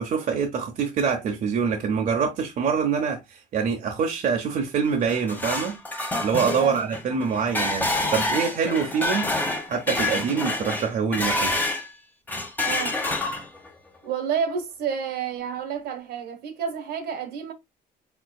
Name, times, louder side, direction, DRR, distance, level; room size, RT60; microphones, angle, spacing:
voice 1, 0.0-5.8 6.2-9.3 9.7-11.5, right 6 dB, 55° right, 0.9 m, -25 dB
sound 1, 4.9-11.9 12.3-13.7, left 2 dB, 10° left, 1.0 m, -27 dB
voice 2, 12.6-13.0 14.0-17.5, right 7 dB, 70° right, 1.3 m, -30 dB
4.5 x 3.7 x 2.3 m
cardioid pair, 110°, 17 cm